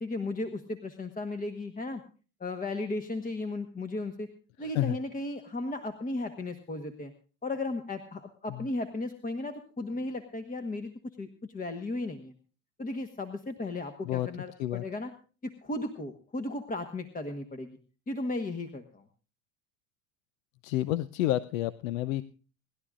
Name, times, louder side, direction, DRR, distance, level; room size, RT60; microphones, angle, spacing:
voice 1, 0.0-2.0 2.4-4.3 4.6-7.1 7.4-10.9 11.2-11.3 11.5-12.3 12.8-15.1 15.4-17.8 18.1-19.0, left 2 dB, 20° left, 7 dB, 1.2 m, -35 dB
voice 2, 4.6-5.0 8.5-8.6 14.0-14.3 14.6-14.8 20.6-22.2, left 14 dB, 75° left, 17 dB, 0.7 m, -29 dB
28.5 x 11.5 x 2.5 m, 0.37 s
hypercardioid pair, 90°, 40 cm